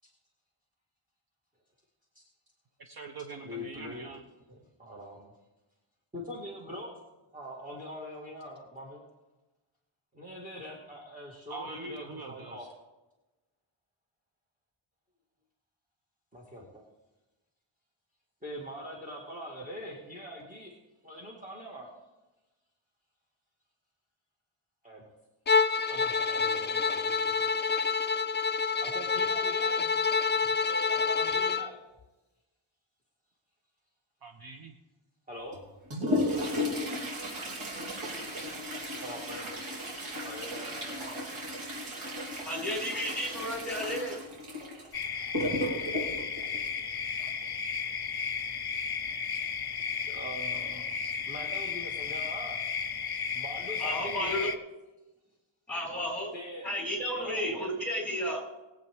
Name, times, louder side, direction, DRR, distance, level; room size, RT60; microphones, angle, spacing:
voice 1, 2.8-4.2 11.5-12.7 34.2-34.7 36.0-36.1, right 3 dB, 45° right, 4 dB, 1.0 m, -43 dB
voice 2, 3.4-4.1 4.5-5.3 6.1-6.9 7.3-9.0 10.1-12.7 16.3-16.8 18.4-20.7 21.0-21.9 24.8-25.1 25.9-27.6 28.8-31.8 35.3-35.6 39.0-39.6 40.2-41.2 50.1-52.6 53.3-54.5 56.3-56.7 57.1-57.7, equal, 15° right, -2 dB, 2.0 m, -43 dB
Bowed string instrument, 25.5-31.7, left 5 dB, 25° left, 0.3 m, -27 dB
Toilet flush, 35.5-47.5 49.3-49.4 49.8-49.9 50.7-50.8 51.4-51.7 52.1-52.3, left 1 dB, 70° right, 3.6 m, -35 dB
voice 3, 42.5-44.2 53.8-54.5 55.7-56.3 56.6-58.4, equal, 5° left, -3 dB, 4.2 m, -32 dB
sound 1, 44.9-54.6, left 6 dB, 50° left, 0.7 m, -34 dB
21.0 x 8.0 x 3.6 m, 1.1 s
wide cardioid pair, 155°, 50 cm